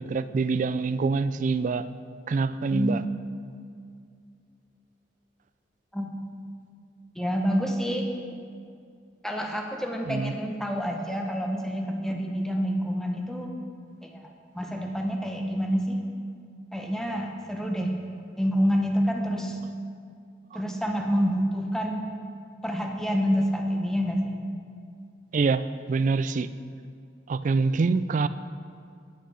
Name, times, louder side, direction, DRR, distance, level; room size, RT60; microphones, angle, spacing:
voice 1, 0.0-1.9 2.3-3.0 10.1-10.3 25.3-26.5 27.3-28.3, right 4 dB, 45° right, 13 dB, 0.3 m, -25 dB
voice 2, 2.7-3.1 5.9-6.1 7.1-8.1 9.2-13.5 14.0-14.3 14.5-16.0 16.7-17.9 18.4-19.6 20.5-22.0 22.6-24.4, equal, 5° left, 1 dB, 0.8 m, -27 dB
9.6 x 6.5 x 6.2 m, 2.3 s
head